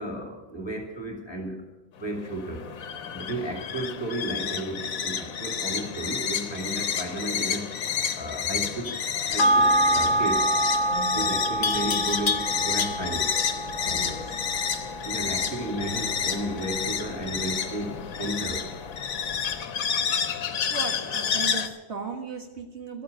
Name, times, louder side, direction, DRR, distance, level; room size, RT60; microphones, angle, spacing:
voice 1, 0.0-1.6 2.0-2.7 3.1-7.7 8.1-9.0 9.2-10.5 11.1-13.4 13.8-14.1 15.0-18.7, right 1 dB, 20° left, 1 dB, 2.5 m, -33 dB
sound 1, 2.0-21.7, left 7 dB, 90° left, 1.4 m, -30 dB
Livestock farm animals working animals, 8.8-9.2 11.6-13.3, left 6 dB, 40° left, 0.5 m, -31 dB
sound 2, 9.4-18.1 18.5-18.6, right 1 dB, 70° left, 1.2 m, -27 dB
voice 2, 10.9-11.4 13.8-14.6 20.7-23.0, right 4 dB, 55° right, 2 dB, 1.8 m, -37 dB
12.5 x 9.4 x 9.2 m, 1.1 s
omnidirectional pair, 1.4 m